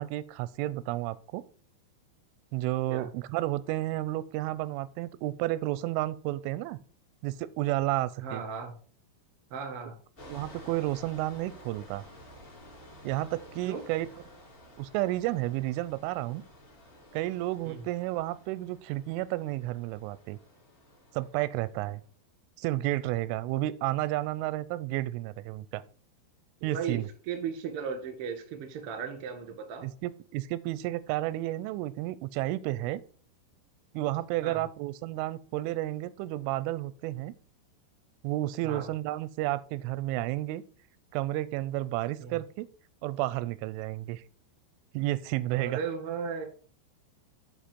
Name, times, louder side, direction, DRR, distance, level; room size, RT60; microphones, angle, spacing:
voice 1, 0.0-1.4 2.5-6.8 7.2-8.4 10.3-12.1 13.0-14.1 14.8-16.4 17.1-20.4 21.1-22.0 22.6-25.8 26.6-27.1 29.8-33.0 33.9-37.3 38.2-40.6 41.1-42.7 43.0-44.2 44.9-45.8, right 16 dB, 90° right, 17 dB, 3.0 m, -31 dB
voice 2, 8.2-8.7 9.5-9.9 13.7-13.8 17.6-17.8 26.6-29.9 34.4-34.6 38.6-38.9 42.2-42.4 45.6-46.4, right 6 dB, 50° right, 5 dB, 1.7 m, -36 dB
sound 1, 10.2-21.9, left 1 dB, 15° left, 1.9 m, -52 dB
9.0 x 4.7 x 5.2 m, 0.43 s
omnidirectional pair, 5.5 m